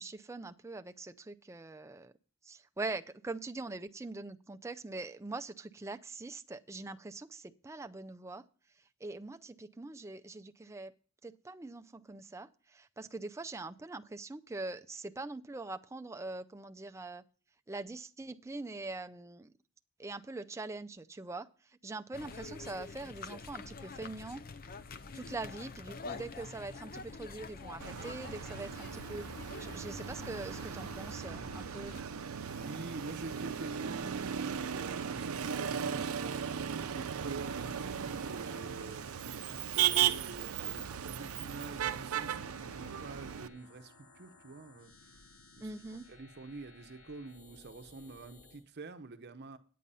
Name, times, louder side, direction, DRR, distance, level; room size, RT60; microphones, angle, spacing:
voice 1, 0.0-2.1 2.4-8.4 9.0-10.9 11.2-17.2 17.7-19.5 20.0-24.4 25.1-32.0 45.6-46.1, right 3 dB, 15° right, 0.4 m, -43 dB
sound 1, 22.1-32.0, left 4 dB, 45° left, 0.5 m, -47 dB
Motor vehicle (road), 27.8-43.5, right 9 dB, 85° right, 0.6 m, -36 dB
sound 2, 28.7-48.6, left 3 dB, 75° left, 1.9 m, -59 dB
voice 2, 32.5-45.2 45.6-45.7 46.1-49.6, right 3 dB, 50° right, 0.7 m, -47 dB
9.4 x 8.8 x 5.5 m
head